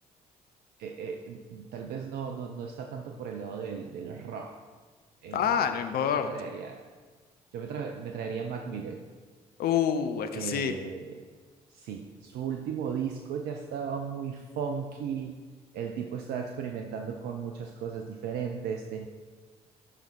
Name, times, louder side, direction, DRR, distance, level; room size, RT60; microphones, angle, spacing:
voice 1, 0.8-4.6 5.2-5.7 6.0-6.9 7.5-9.0 10.3-11.2 11.7-15.4 15.7-19.1, right 7 dB, 65° right, 4 dB, 0.6 m, -36 dB
voice 2, 5.3-6.3 9.6-10.7, left 8 dB, 55° left, 8 dB, 0.7 m, -27 dB
12.5 x 5.1 x 4.2 m, 1.5 s
figure-of-eight pair, 45°, 19 cm